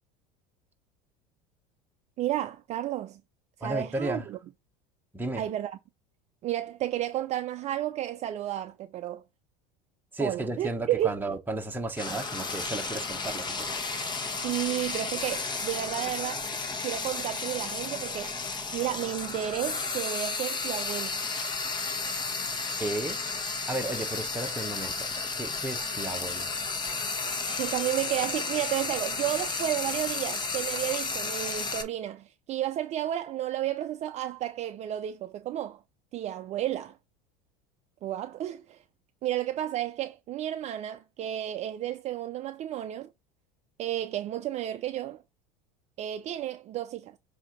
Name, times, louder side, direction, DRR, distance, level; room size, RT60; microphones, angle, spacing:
voice 1, 2.2-3.2 3.6-4.4 5.4-5.8 6.4-9.2 10.2-11.2 14.4-16.5 16.8-21.2 27.5-35.8 36.1-37.0 38.0-38.8 39.2-43.1 43.8-45.2 46.0-47.1, right 12 dB, 40° right, 0.5 m, -32 dB
voice 2, 3.6-4.3 5.1-5.5 10.1-13.7 22.8-25.1 25.3-26.5, right 2 dB, 10° right, 1.3 m, -34 dB
Frying (food), 12.0-31.8, left 4 dB, 25° left, 1.3 m, -33 dB
7.3 x 2.8 x 5.2 m
supercardioid pair, 110°, 18 cm